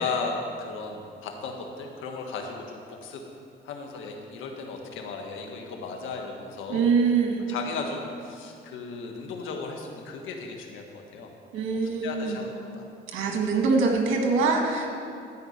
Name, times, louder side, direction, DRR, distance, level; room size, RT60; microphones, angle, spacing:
voice 1, 0.0-3.2 3.6-6.9 7.5-12.8, left 4 dB, 90° left, 2 dB, 1.5 m, -36 dB
voice 2, 6.7-7.5 11.5-12.5 13.1-14.9, right 4 dB, 90° right, 2 dB, 1.8 m, -24 dB
13.0 x 5.4 x 8.1 m, 2.4 s
cardioid pair, 90°, 20 cm